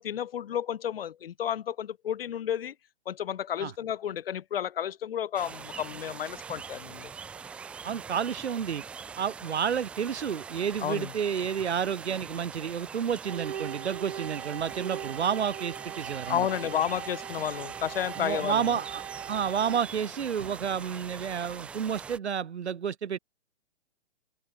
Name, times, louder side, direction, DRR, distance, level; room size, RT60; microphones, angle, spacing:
voice 1, 0.0-2.7 3.1-7.1 10.8-11.1 16.3-18.8, left 9 dB, 60° left, 0.9 m, -32 dB
sound 1, 5.3-22.2, right 6 dB, 5° right, 0.6 m, -43 dB
voice 2, 7.8-8.8 9.2-16.5 18.2-19.0 19.3-23.2, right 7 dB, 80° right, 1.9 m, -30 dB
sound 2, 13.3-21.2, right 9 dB, 60° right, 1.1 m, -41 dB
hypercardioid pair, 165°, 33 cm